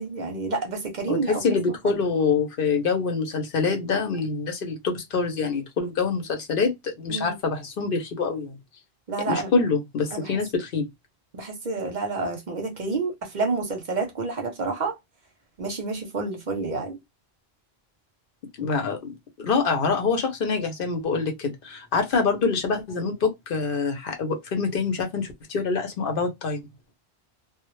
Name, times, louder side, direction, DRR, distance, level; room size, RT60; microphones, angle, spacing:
voice 1, 0.0-2.0 7.1-7.4 9.1-9.5 10.1-10.4 11.3-15.0 15.6-17.0, right 3 dB, 55° right, 0.7 m, -29 dB
voice 2, 1.1-8.6 9.3-10.9 18.6-26.6, left 4 dB, 65° left, 0.8 m, -25 dB
2.1 x 2.0 x 2.9 m
omnidirectional pair, 1.0 m